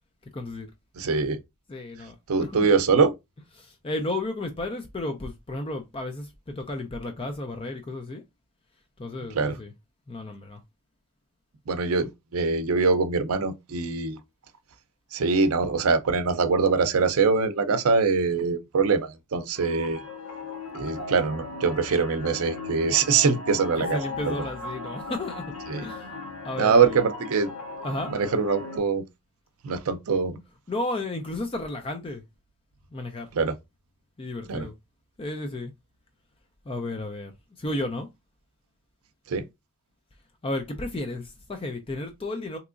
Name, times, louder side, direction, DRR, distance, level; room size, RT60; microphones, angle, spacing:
voice 1, 0.3-0.7 1.7-2.6 3.6-8.2 9.0-9.7 10.1-10.6 23.8-25.4 25.8-26.2 26.4-27.0 27.8-28.1 30.7-32.2 32.9-33.3 34.2-34.7 35.2-35.7 36.7-37.3 37.6-38.1 40.4-42.6, left 2 dB, 25° left, 0.4 m, -33 dB
voice 2, 1.0-1.4 2.3-3.1 9.3-9.6 11.7-14.2 15.1-20.0 20.7-24.3 25.7-25.8 26.6-27.5 28.1-29.0 29.6-30.4 33.3-33.5 34.5-34.7 39.3-39.4, right 5 dB, 70° right, 0.5 m, -23 dB
sound 1, 19.6-28.8, left 2 dB, 80° left, 0.7 m, -37 dB
3.5 x 2.9 x 2.4 m
head